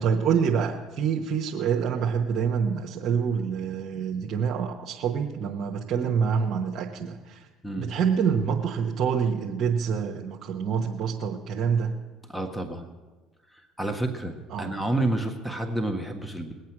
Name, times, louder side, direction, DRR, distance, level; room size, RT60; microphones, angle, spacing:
voice 1, 0.0-7.5 7.8-11.9 14.5-14.8, right 7 dB, 55° right, 0 dB, 1.2 m, -26 dB
voice 2, 12.3-12.9 13.8-16.5, right 1 dB, 5° left, 5 dB, 1.6 m, -29 dB
20.5 x 8.3 x 6.1 m, 1.3 s
supercardioid pair, 80°, 0 cm